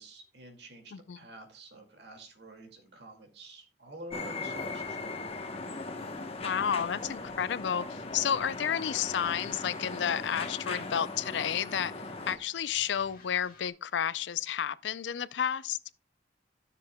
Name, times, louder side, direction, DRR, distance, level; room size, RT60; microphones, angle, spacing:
voice 1, 0.0-5.0, right 1 dB, 70° right, 2.2 m, -48 dB
sound 1, 4.1-12.4, left 3 dB, 35° left, 1.0 m, -39 dB
sound 2, 5.5-13.7, left 3 dB, 50° left, 2.0 m, -59 dB
voice 2, 6.4-11.9 12.3-15.8, left 8 dB, 90° left, 0.4 m, -31 dB
13.5 x 7.0 x 2.2 m
head